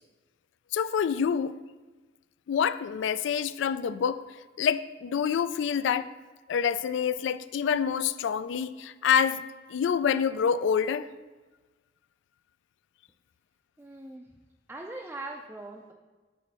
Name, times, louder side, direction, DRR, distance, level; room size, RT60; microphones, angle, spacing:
voice 1, 0.7-1.6 2.5-4.2 4.6-6.1 6.5-9.4 9.7-11.1, left 7 dB, 80° left, 14 dB, 0.3 m, -27 dB
voice 2, 13.8-14.3 14.7-15.9, right 2 dB, 10° right, -1 dB, 0.4 m, -41 dB
8.4 x 3.1 x 6.1 m, 1.3 s
head